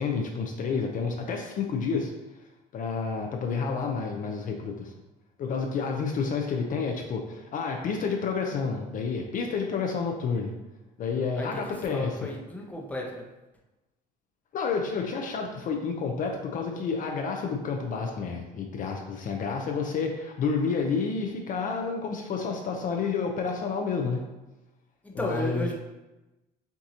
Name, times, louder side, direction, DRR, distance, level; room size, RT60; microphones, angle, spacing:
voice 1, 0.0-2.1 2.7-4.9 5.4-10.5 11.0-12.3 14.5-24.2 25.1-25.7, left 5 dB, 50° left, 2 dB, 0.5 m, -30 dB
voice 2, 11.4-13.2 25.2-25.7, left 1 dB, 10° left, -1 dB, 0.8 m, -34 dB
5.9 x 2.7 x 2.8 m, 1.0 s
cardioid pair, 110°, 17 cm